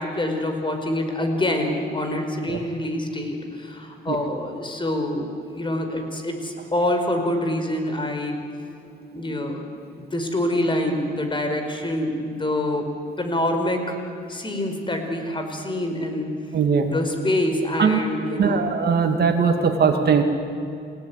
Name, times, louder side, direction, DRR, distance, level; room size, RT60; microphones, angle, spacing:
voice 1, 0.0-8.4 9.1-9.6 10.1-12.9 13.2-14.0 14.3-16.3 16.9-18.7, left 1 dB, 25° left, 5 dB, 5.2 m, -26 dB
voice 2, 16.5-17.0 17.8-18.0 18.3-20.2, right 6 dB, 55° right, 5 dB, 2.5 m, -20 dB
28.5 x 18.0 x 9.9 m, 2.4 s
cardioid pair, 90°, 20 cm